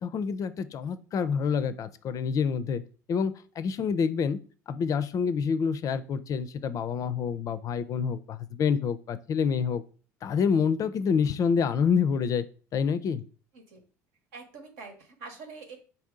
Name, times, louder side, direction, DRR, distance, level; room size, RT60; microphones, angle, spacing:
voice 1, 0.0-2.8 3.1-4.4 4.7-9.8 10.2-12.4 12.7-13.2, left 6 dB, 40° left, 13 dB, 0.4 m, -27 dB
voice 2, 14.3-15.8, right 4 dB, 70° right, 4 dB, 1.1 m, -45 dB
4.2 x 2.7 x 3.7 m, 0.38 s
hypercardioid pair, 70°, 9 cm